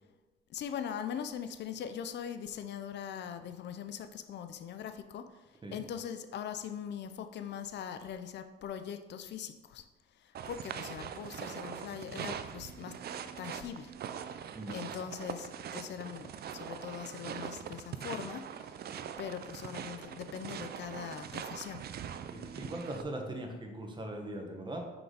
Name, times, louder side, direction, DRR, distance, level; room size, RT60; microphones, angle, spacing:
voice 1, 0.5-5.3 5.7-9.8 10.2-13.0 13.4-13.9 14.7-18.5 19.2-21.8, left 8 dB, 60° left, 9 dB, 0.5 m, -41 dB
sound 1, 10.3-23.0, right 8 dB, 55° right, 0.5 m, -42 dB
voice 2, 22.3-24.8, right 1 dB, 25° right, 1 dB, 1.3 m, -40 dB
5.9 x 4.9 x 4.0 m, 1.2 s
cardioid pair, 90°, 20 cm